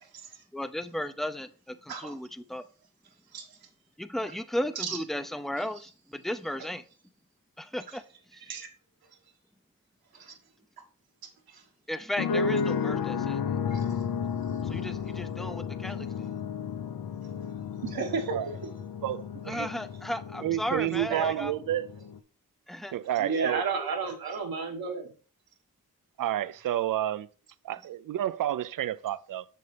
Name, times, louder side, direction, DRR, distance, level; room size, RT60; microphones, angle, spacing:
voice 1, 0.5-2.6 4.0-6.8 7.6-8.0 11.9-13.4 14.6-16.3 19.5-21.5 22.7-23.0 23.3-23.5, left 1 dB, ahead, 0.5 m, -35 dB
sound 1, 12.2-22.2, left 6 dB, 70° left, 0.7 m, -33 dB
voice 2, 17.8-18.4 21.1-21.3 23.2-25.1, right 5 dB, 80° right, 1.5 m, -32 dB
voice 3, 19.0-19.7 20.4-21.9 22.9-23.7 26.2-27.3 27.6-29.4, right 12 dB, 65° right, 0.5 m, -30 dB
6.7 x 6.7 x 3.3 m
cardioid pair, 80°, 36 cm